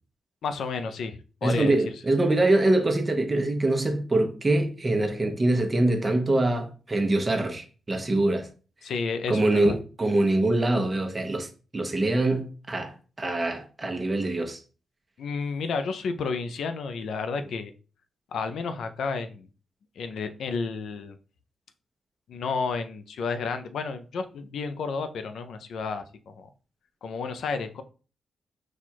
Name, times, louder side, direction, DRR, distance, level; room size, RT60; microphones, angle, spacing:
voice 1, 0.4-1.8 8.8-9.7 15.2-17.7 18.3-19.5 20.0-21.2 22.3-26.5 27.0-27.8, left 4 dB, 80° left, 0.5 m, -31 dB
voice 2, 1.4-8.5 9.3-14.6, right 2 dB, 25° right, 0.9 m, -24 dB
4.3 x 2.4 x 4.4 m
cardioid pair, 100°, 0 cm